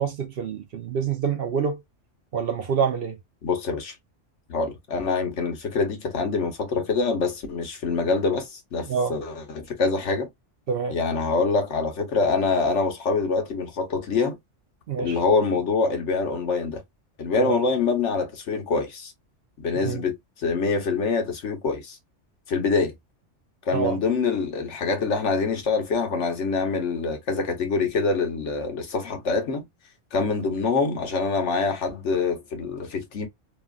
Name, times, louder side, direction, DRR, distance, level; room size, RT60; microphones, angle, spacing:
voice 1, 0.0-1.8 2.3-3.2 8.9-9.1 10.7-11.0 14.9-15.2 17.4-17.6 19.8-20.0 23.7-24.0, right 6 dB, 60° right, 0.7 m, -26 dB
voice 2, 3.4-3.9 4.5-10.3 10.9-14.4 15.0-16.8 17.2-19.1 19.6-22.0 22.5-22.9 23.6-29.6 30.1-33.3, left 4 dB, 70° left, 1.2 m, -25 dB
3.1 x 2.3 x 2.2 m
omnidirectional pair, 1.3 m